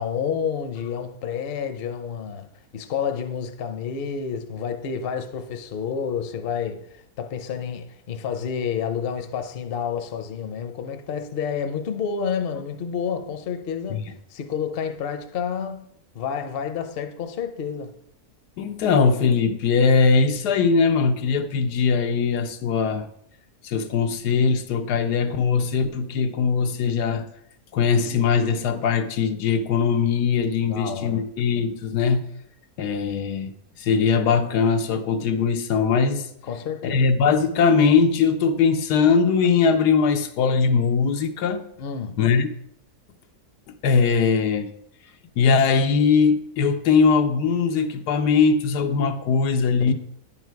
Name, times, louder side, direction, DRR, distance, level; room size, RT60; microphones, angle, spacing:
voice 1, 0.0-2.5 2.7-14.0 14.3-15.9 16.1-17.9 30.6-31.2 36.4-37.1 41.8-42.2 49.9-50.0, left 7 dB, 50° left, 0.7 m, -29 dB
voice 2, 18.6-23.1 23.6-27.3 27.7-32.3 32.8-36.3 36.8-41.6 42.2-42.5 43.8-44.7 45.4-49.9, left 5 dB, 90° left, 1.3 m, -20 dB
10.0 x 5.7 x 4.6 m
omnidirectional pair, 1.7 m